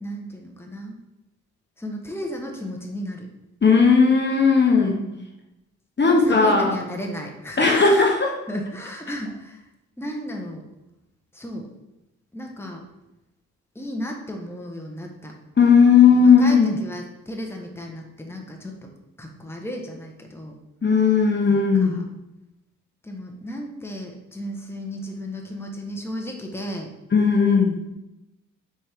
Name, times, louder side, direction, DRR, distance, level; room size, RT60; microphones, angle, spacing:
voice 1, 0.0-0.9 1.8-3.3 4.9-5.2 6.0-7.6 8.5-9.6 10.0-10.6 11.3-11.7 12.3-12.8 13.7-15.3 16.2-18.9 19.2-20.5 21.5-22.0 23.0-26.9, equal, 5° left, 1 dB, 1.3 m, -34 dB
voice 2, 3.6-4.9 6.0-6.7 7.6-8.4 15.6-16.7 20.8-22.0 27.1-27.8, left 5 dB, 30° left, 0 dB, 1.1 m, -16 dB
6.2 x 4.5 x 3.6 m, 0.93 s
supercardioid pair, 50°, 34 cm